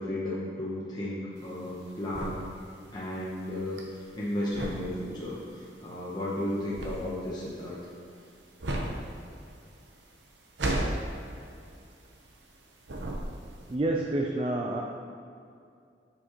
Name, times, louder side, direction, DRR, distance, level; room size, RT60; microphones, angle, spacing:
voice 1, 0.0-2.5 2.9-7.8, left 1 dB, 25° left, -8 dB, 1.0 m, -34 dB
sound 1, 1.4-12.6 12.8-13.7, right 1 dB, 90° right, 1.0 m, -35 dB
voice 2, 13.7-14.8, right 2 dB, 30° right, 0 dB, 0.4 m, -28 dB
9.9 x 5.7 x 3.0 m, 2.4 s
head